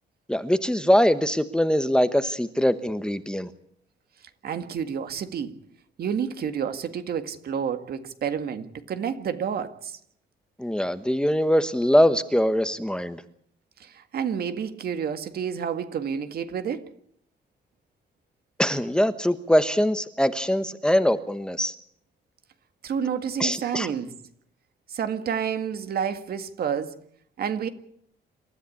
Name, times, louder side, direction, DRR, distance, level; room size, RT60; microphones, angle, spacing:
voice 1, 0.3-3.5 10.6-13.2 18.6-21.7 23.4-23.9, equal, 5° left, 1.1 m, -22 dB
voice 2, 4.4-5.5 6.0-10.0 13.8-16.9 22.8-24.1 24.9-27.0 27.4-27.7, right 7 dB, 60° right, 1.9 m, -29 dB
27.5 x 13.5 x 8.6 m
cardioid pair, 130°, 18 cm